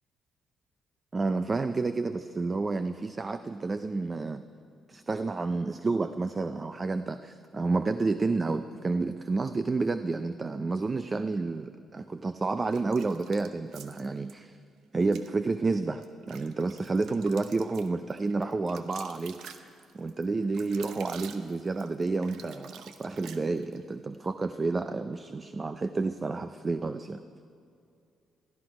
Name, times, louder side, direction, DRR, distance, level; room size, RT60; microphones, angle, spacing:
voice 1, 1.1-4.4 4.9-14.6 14.9-27.2, right 3 dB, 30° right, 10 dB, 0.5 m, -30 dB
sound 1, 12.7-14.3 15.0-15.3 15.8-23.8, right 7 dB, 80° right, 0.8 m, -48 dB
17.0 x 13.0 x 5.1 m, 2.5 s
cardioid pair, 90°, 0 cm